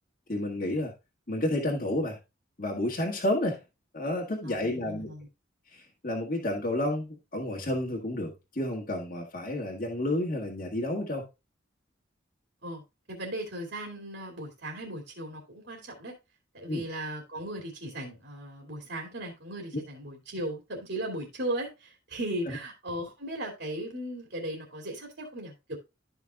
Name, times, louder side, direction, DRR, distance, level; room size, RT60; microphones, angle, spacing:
voice 1, 0.3-0.9 1.3-2.2 2.6-3.6 3.9-5.1 5.7-11.3 16.7-16.8 22.5-22.6, left 1 dB, 45° left, 1.8 m, -30 dB
voice 2, 4.4-5.3 12.6-12.8 13.1-16.1 16.5-25.8, right 1 dB, 65° right, 2.6 m, -37 dB
13.5 x 5.7 x 2.3 m
head